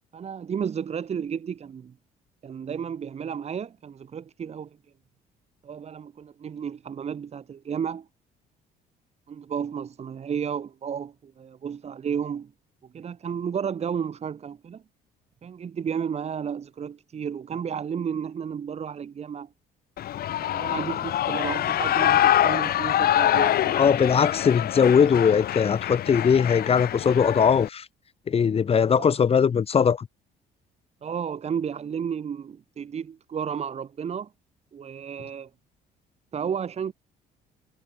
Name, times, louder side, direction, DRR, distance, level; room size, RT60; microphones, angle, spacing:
voice 1, 0.1-1.9 2.4-4.7 5.6-8.1 9.3-12.5 12.9-14.8 15.4-19.5 20.4-24.2 28.9-29.1 31.0-34.3 34.7-35.5 36.3-36.9, right 7 dB, 40° right, 2.3 m, -32 dB
Shout / Cheering, 20.0-27.7, left 12 dB, 65° left, 6.0 m, -25 dB
voice 2, 23.7-27.8 28.3-30.1, left 7 dB, 35° left, 1.6 m, -20 dB
cardioid pair, 110°, 17 cm